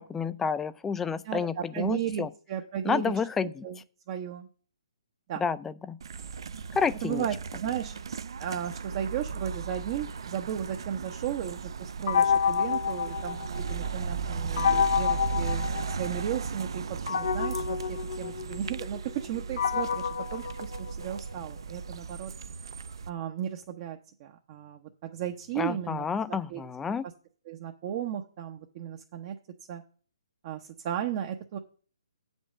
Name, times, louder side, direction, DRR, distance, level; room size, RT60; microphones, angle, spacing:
voice 1, 0.0-2.3 2.8-3.6 5.4-6.0 6.8-7.2 25.6-27.0, left 6 dB, 10° left, 0.3 m, -30 dB
voice 2, 1.2-3.1 3.6-3.8 4.1-4.5 5.3-5.4 7.0-8.0 8.4-13.4 13.7-16.8 17.1-22.3 23.1-27.1 27.5-29.4 29.7-29.8 30.4-31.6, right 10 dB, 35° right, 0.8 m, -35 dB
sound 1, 6.0-23.1, right 5 dB, 65° right, 0.5 m, -36 dB
sound 2, 12.1-13.9 14.6-16.4 17.1-21.3, left 7 dB, 55° left, 0.5 m, -29 dB
7.8 x 5.3 x 7.3 m
hypercardioid pair, 150°, 3 cm